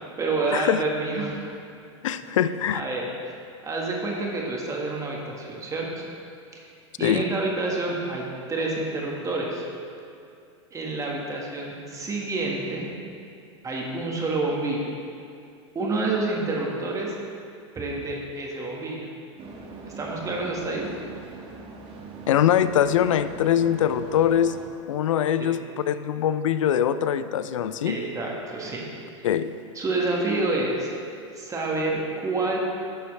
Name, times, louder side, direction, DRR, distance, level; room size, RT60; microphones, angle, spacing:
voice 1, 0.0-1.5 2.7-3.1 3.6-6.0 6.5-6.6 7.0-9.6 10.7-12.9 13.6-14.9 15.7-17.1 17.7-19.1 20.0-20.8 25.4-25.5 27.8-28.8 29.7-30.9 31.3-32.6, right 2 dB, 20° right, -2 dB, 1.6 m, -28 dB
voice 2, 0.5-0.8 2.0-2.8 7.0-7.2 22.3-24.6 24.9-25.6 25.9-28.0 29.2-29.5, left 10 dB, 85° left, 13 dB, 0.4 m, -22 dB
sound 1, 19.4-24.7, right 3 dB, 35° right, 1.3 m, -42 dB
11.0 x 6.6 x 3.3 m, 2.4 s
hypercardioid pair, 110°, 16 cm